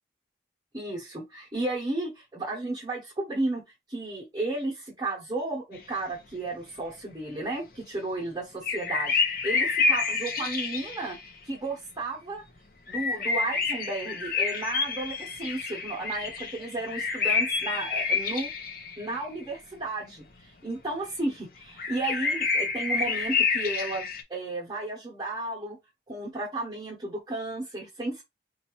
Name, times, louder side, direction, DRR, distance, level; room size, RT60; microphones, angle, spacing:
voice 1, 0.7-11.2 11.4-12.4 12.9-18.5 19.0-25.8 26.1-28.2, right 2 dB, 20° right, 0.8 m, -33 dB
sound 1, 8.6-11.2 12.9-19.2 21.8-24.2, left 4 dB, 50° left, 0.7 m, -28 dB
4.0 x 2.4 x 3.0 m
head